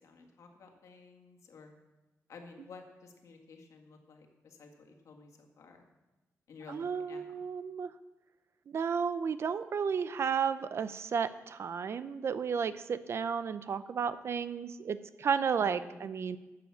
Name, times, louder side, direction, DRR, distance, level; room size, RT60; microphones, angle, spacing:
voice 1, 0.0-1.7 2.3-5.8 6.5-7.2 15.6-16.0, left 4 dB, 70° left, 3 dB, 1.8 m, -53 dB
voice 2, 6.7-7.9 8.7-16.4, right 6 dB, 50° right, 13 dB, 0.5 m, -33 dB
12.0 x 7.6 x 7.2 m, 1.1 s
wide cardioid pair, 165°, 5 cm